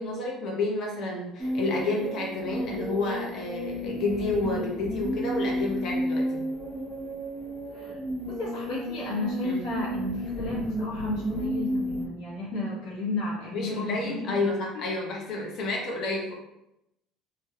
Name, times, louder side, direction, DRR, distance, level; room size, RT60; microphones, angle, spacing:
voice 1, 0.0-6.5 9.4-9.6 13.5-16.3, left 2 dB, 60° left, -1 dB, 0.8 m, -30 dB
sound 1, 1.4-12.1, equal, 5° right, 0.7 m, -32 dB
voice 2, 8.3-14.5, left 2 dB, 85° left, -6 dB, 1.3 m, -33 dB
3.2 x 2.2 x 2.8 m, 0.85 s
supercardioid pair, 90°, 0 cm